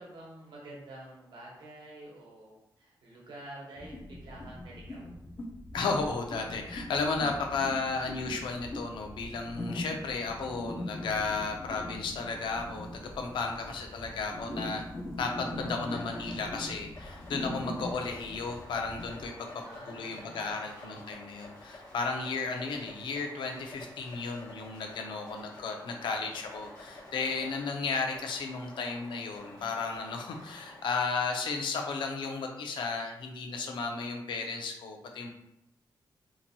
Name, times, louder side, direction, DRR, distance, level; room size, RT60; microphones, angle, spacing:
voice 1, 0.0-5.1 13.6-14.1 19.6-21.1, right 1 dB, 75° right, -3 dB, 1.0 m, -48 dB
sound 1, 3.8-19.3, left 1 dB, 25° left, 0.5 m, -41 dB
voice 2, 5.7-14.8 15.2-35.3, left 4 dB, 85° left, 3 dB, 0.5 m, -34 dB
sound 2, 12.1-31.3, left 2 dB, 50° left, 1.2 m, -51 dB
2.9 x 2.6 x 2.7 m, 0.83 s
wide cardioid pair, 135°, 8 cm